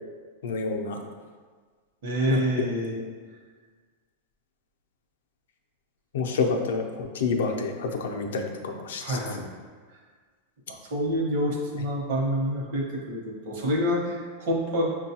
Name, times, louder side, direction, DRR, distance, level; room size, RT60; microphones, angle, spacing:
voice 1, 0.4-1.0 2.3-2.4 2.9-3.1 6.1-9.2, left 4 dB, 75° left, 3 dB, 0.5 m, -28 dB
voice 2, 2.0-2.9 9.0-9.4 10.9-14.9, equal, 45° right, -2 dB, 0.8 m, -27 dB
6.0 x 2.2 x 2.8 m, 1.5 s
supercardioid pair, 180°, 0 cm